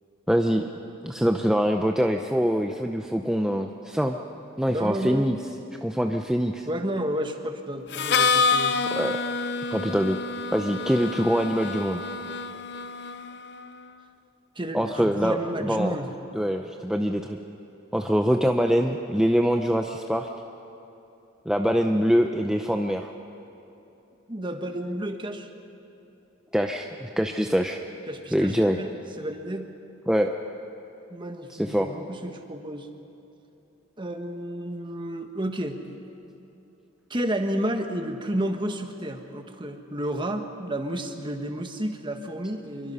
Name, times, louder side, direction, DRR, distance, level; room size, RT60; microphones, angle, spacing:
voice 1, 0.3-0.6 1.0-4.2 4.6-5.4 5.8-6.7 8.7-9.2 9.7-10.2 10.5-12.0 14.7-16.0 16.3-17.4 17.9-20.3 21.5-23.1 26.5-27.8 28.3-28.8 30.1-30.3 31.6-31.9, equal, 5° right, 3 dB, 0.6 m, -24 dB
voice 2, 4.7-5.4 6.7-8.8 14.5-16.1 24.3-25.5 28.1-29.7 31.1-32.9 34.0-35.8 37.1-42.9, right 1 dB, 25° right, 5 dB, 1.4 m, -31 dB
Harmonica, 7.9-13.7, left 4 dB, 60° left, 0.7 m, -27 dB
26.0 x 23.0 x 5.6 m, 2.9 s
head